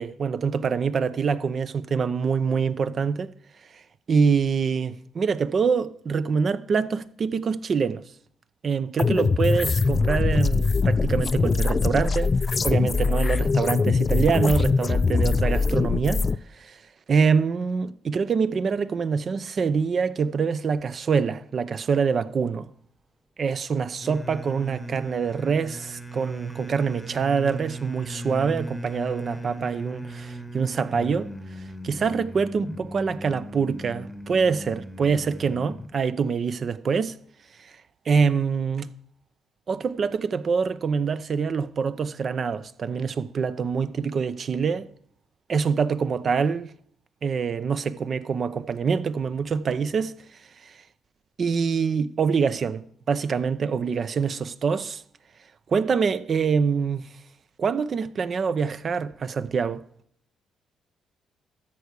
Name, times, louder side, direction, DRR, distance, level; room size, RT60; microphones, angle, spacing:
voice 1, 0.0-3.3 4.1-8.0 8.6-12.3 12.6-16.2 16.6-16.8 17.1-22.7 23.4-31.3 31.8-37.1 38.1-38.9 39.7-44.9 45.5-46.7 47.2-50.1 50.6-50.7 51.4-55.0 55.7-57.1 57.6-59.8, right 5 dB, 50° right, 0.7 m, -25 dB
sound 1, 9.0-16.4, left 4 dB, 35° left, 0.4 m, -22 dB
sound 2, 24.0-35.9, right 1 dB, 5° left, 1.0 m, -38 dB
13.0 x 4.7 x 8.2 m
cardioid pair, 90°, 0 cm